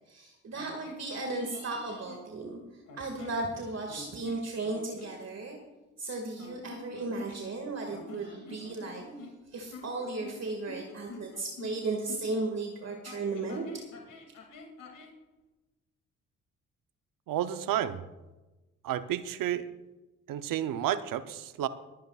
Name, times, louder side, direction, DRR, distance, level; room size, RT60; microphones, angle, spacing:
voice 1, 0.1-2.6 3.0-5.6 6.0-9.0 9.5-13.6, right 3 dB, 45° right, 2 dB, 2.1 m, -35 dB
sound 1, 0.5-2.3 2.9-3.4 3.9-5.2 6.3-7.6 7.9-12.4 13.0-15.2, left 2 dB, 70° left, 2.6 m, -48 dB
voice 2, 17.3-18.0 18.8-19.7 20.3-21.7, right 11 dB, 70° right, 11 dB, 0.8 m, -31 dB
27.5 x 9.3 x 2.4 m, 1.1 s
supercardioid pair, 55°, 35 cm